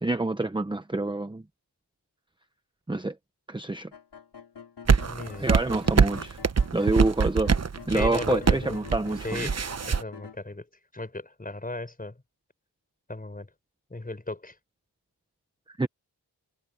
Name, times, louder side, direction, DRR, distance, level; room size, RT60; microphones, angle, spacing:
voice 1, 0.0-1.4 2.9-3.1 3.5-3.9 5.4-6.4 6.7-7.5 7.9-9.5 15.8-15.9, right 2 dB, 10° right, 0.9 m, -27 dB
sound 1, 3.9-5.5 5.8-10.4, left 7 dB, 75° left, 5.6 m, -47 dB
sound 2, 4.9-10.0, right 5 dB, 40° right, 1.0 m, -23 dB
voice 2, 5.0-5.6 7.9-8.8 9.2-9.6 9.9-10.7 10.9-12.2 13.1-13.5 13.9-14.6, left 2 dB, 20° left, 5.2 m, -36 dB
wide cardioid pair, 105°, 41 cm